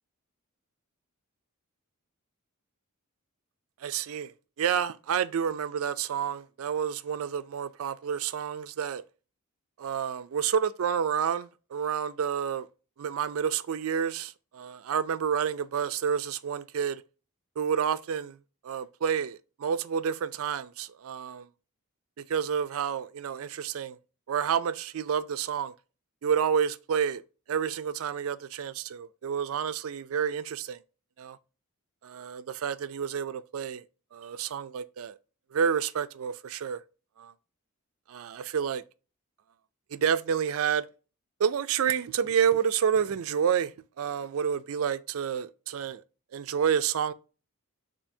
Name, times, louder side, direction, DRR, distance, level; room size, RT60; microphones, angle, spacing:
voice 1, 3.8-4.3 4.6-9.0 9.8-12.7 13.0-17.0 17.6-18.4 18.6-21.5 22.2-24.0 24.3-25.7 26.2-27.2 27.5-30.8 31.2-31.4 32.0-33.8 34.1-35.2 35.5-36.8 37.2-37.3 38.1-38.8 39.9-40.9 41.4-43.7 44.0-46.0 46.3-47.1, right 7 dB, 70° right, 0.4 m, -29 dB
6.8 x 2.8 x 2.7 m
head